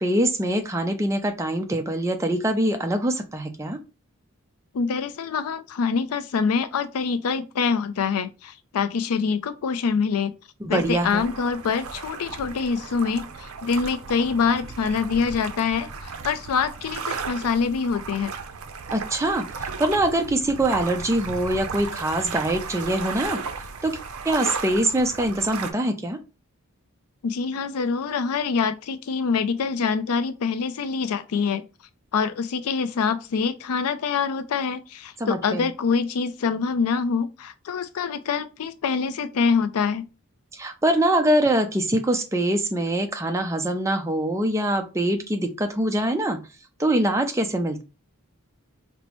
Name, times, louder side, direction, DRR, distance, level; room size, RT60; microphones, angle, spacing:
voice 1, 0.0-3.8 10.6-11.3 18.9-23.4 23.8-24.0 24.3-26.2 35.2-35.7 40.5-46.4 46.8-47.8, right 1 dB, 15° right, 0.4 m, -24 dB
voice 2, 4.7-10.3 10.7-18.3 27.2-31.6 32.1-40.1, left 5 dB, 85° left, 0.4 m, -25 dB
sound 1, 10.7-25.7, right 5 dB, 75° right, 0.5 m, -35 dB
5.2 x 2.0 x 3.0 m
head